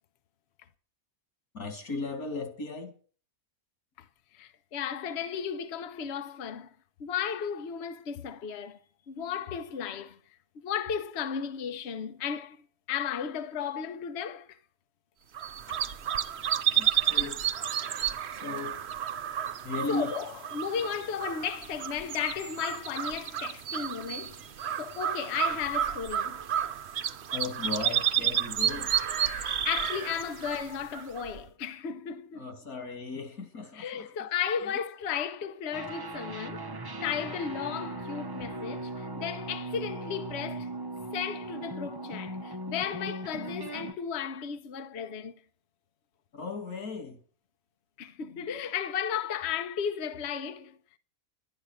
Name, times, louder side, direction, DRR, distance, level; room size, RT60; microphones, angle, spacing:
voice 1, 1.5-2.9 16.7-17.5 18.3-18.8 19.6-20.1 27.3-28.9 32.3-34.1 46.3-47.2, left 3 dB, 90° left, 3.2 m, -36 dB
voice 2, 4.3-6.7 7.0-8.8 9.1-10.2 10.5-14.6 15.7-15.8 19.9-24.4 24.8-26.4 29.2-32.5 33.7-36.7 37.0-40.7 41.1-45.4 48.0-50.8, left 8 dB, 55° left, 1.0 m, -34 dB
sound 1, 15.3-31.4, right 10 dB, 55° right, 0.9 m, -31 dB
sound 2, 35.7-43.9, right 1 dB, 20° right, 0.7 m, -38 dB
12.0 x 11.0 x 6.5 m
omnidirectional pair, 1.5 m